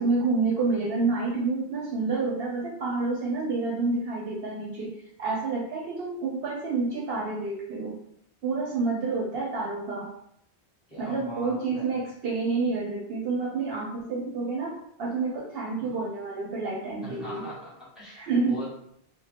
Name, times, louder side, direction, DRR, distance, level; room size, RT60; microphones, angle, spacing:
voice 1, 0.0-8.0 8.4-10.1 11.0-17.4 18.1-18.6, right 3 dB, 65° right, -2 dB, 0.8 m, -29 dB
voice 2, 10.9-12.0 15.8-16.0 17.0-18.7, equal, ahead, -8 dB, 1.1 m, -41 dB
2.9 x 2.1 x 3.2 m, 0.73 s
omnidirectional pair, 1.1 m